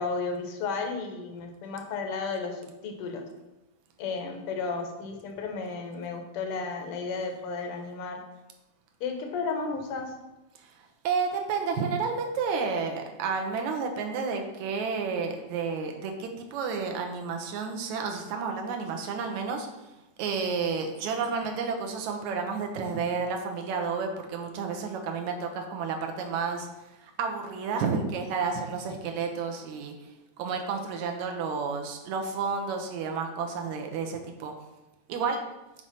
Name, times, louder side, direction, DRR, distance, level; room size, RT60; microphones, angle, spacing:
voice 1, 0.0-3.2 4.0-8.2 9.0-10.1 21.2-21.3, left 4 dB, 60° left, 4 dB, 1.5 m, -33 dB
voice 2, 11.0-19.7 20.2-26.7 27.0-30.1 30.4-34.5 35.1-35.4, right 5 dB, 70° right, 3 dB, 2.1 m, -31 dB
7.7 x 4.9 x 5.8 m, 0.99 s
omnidirectional pair, 3.8 m